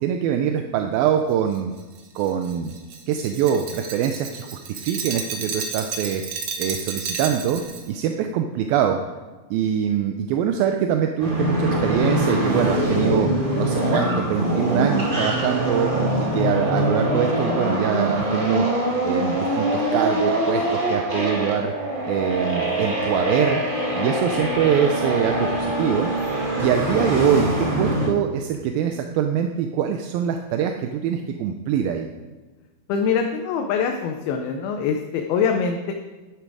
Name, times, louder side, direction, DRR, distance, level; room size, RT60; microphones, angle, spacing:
voice 1, 0.0-1.7 2.2-2.8 3.1-6.2 6.6-7.6 7.9-9.0 9.5-13.3 13.6-18.7 19.0-21.7 22.0-23.6 24.0-26.1 26.6-32.1, right 9 dB, 80° right, 5 dB, 2.4 m, -23 dB
Glass, 1.5-7.9, right 5 dB, 60° right, 1.9 m, -32 dB
sound 1, 11.2-28.1, right 1 dB, 20° right, 1.6 m, -23 dB
voice 2, 32.9-35.9, left 6 dB, 85° left, 4 dB, 2.7 m, -24 dB
11.5 x 10.5 x 4.8 m, 1.2 s
omnidirectional pair, 4.3 m